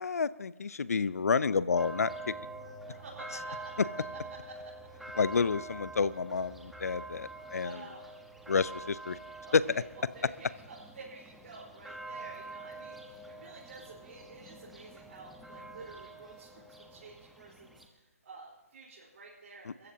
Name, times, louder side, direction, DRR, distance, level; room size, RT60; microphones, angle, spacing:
voice 1, 0.0-2.1 5.2-7.8 8.5-9.2 9.5-9.6, left 5 dB, 75° left, 18 dB, 0.6 m, -29 dB
sound 1, 1.8-17.9, right 2 dB, ahead, 1.2 m, -46 dB
voice 2, 2.9-3.8 4.5-4.7 7.6-8.1 9.4-16.6 16.9-19.9, right 3 dB, 60° right, -6 dB, 4.4 m, -50 dB
29.0 x 14.5 x 2.9 m, 1.0 s
figure-of-eight pair, 140°, 8 cm